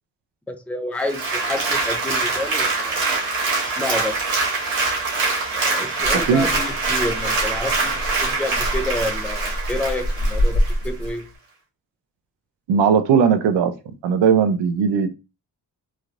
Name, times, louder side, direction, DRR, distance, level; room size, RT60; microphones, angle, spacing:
voice 1, 0.5-3.0 3.8-4.3 5.5-11.3, left 1 dB, 5° left, 0.5 m, -29 dB
Applause, 1.0-10.7 11.2-11.3, right 3 dB, 80° right, 1.4 m, -24 dB
Rattle (instrument), 6.0-11.4, equal, 25° left, 1.2 m, -26 dB
voice 2, 12.7-13.7 14.0-15.1, right 7 dB, 65° right, 0.6 m, -17 dB
3.1 x 2.3 x 2.5 m
supercardioid pair, 45°, 47 cm